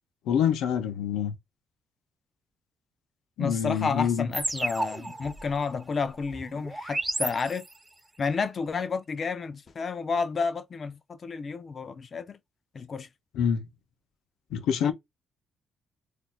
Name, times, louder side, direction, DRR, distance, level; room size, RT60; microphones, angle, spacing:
voice 1, 0.3-1.4 3.4-4.3 13.3-13.7 14.5-14.9, left 8 dB, 85° left, 0.7 m, -26 dB
voice 2, 3.4-7.7 8.2-12.4 12.7-13.1 14.8-14.9, left 5 dB, 45° left, 0.6 m, -31 dB
sound 1, 4.3-8.0, right 2 dB, 15° right, 0.5 m, -33 dB
4.1 x 2.6 x 2.3 m
cardioid pair, 90°, 0 cm